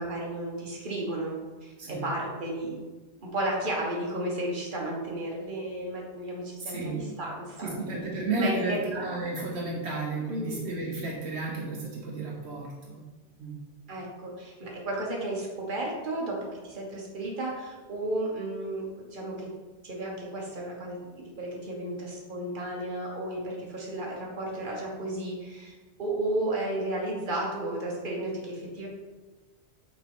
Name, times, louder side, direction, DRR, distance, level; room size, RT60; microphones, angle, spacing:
voice 1, 0.0-2.7 3.2-7.8 8.4-8.8 10.3-10.5 13.9-19.5 19.8-25.7 26.0-28.9, right 1 dB, 50° right, -2 dB, 1.4 m, -33 dB
voice 2, 6.6-7.2 7.6-13.0 13.4-13.5, right 2 dB, 75° right, -2 dB, 1.2 m, -32 dB
5.9 x 5.1 x 3.6 m, 1.2 s
omnidirectional pair, 1.1 m